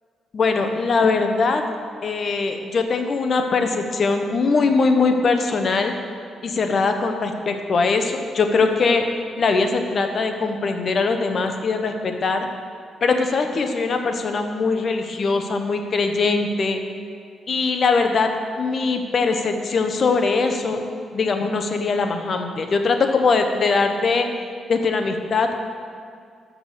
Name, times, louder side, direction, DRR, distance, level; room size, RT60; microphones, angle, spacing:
voice 1, 0.3-1.6 2.0-5.9 6.4-9.0 9.4-12.5 13.0-16.8 17.5-18.3 18.6-20.8 21.1-24.3 24.7-25.6, left 4 dB, 50° left, 5 dB, 0.8 m, -21 dB
6.7 x 6.0 x 6.7 m, 2.3 s
cardioid pair, 85°, 0 cm